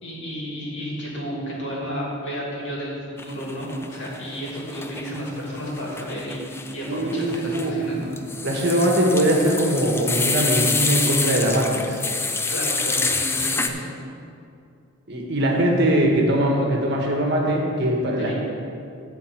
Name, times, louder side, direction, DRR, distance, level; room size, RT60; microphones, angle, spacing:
voice 1, 0.0-8.1 12.5-13.9 18.2-18.3, equal, 60° left, -4 dB, 2.6 m, -32 dB
sound 1, 3.2-4.2 4.5-13.7, left 3 dB, 10° left, 0.4 m, -27 dB
voice 2, 6.9-7.8 8.4-12.0 15.1-18.3, right 1 dB, 55° right, 0 dB, 1.5 m, -21 dB
12.0 x 4.2 x 7.7 m, 2.5 s
head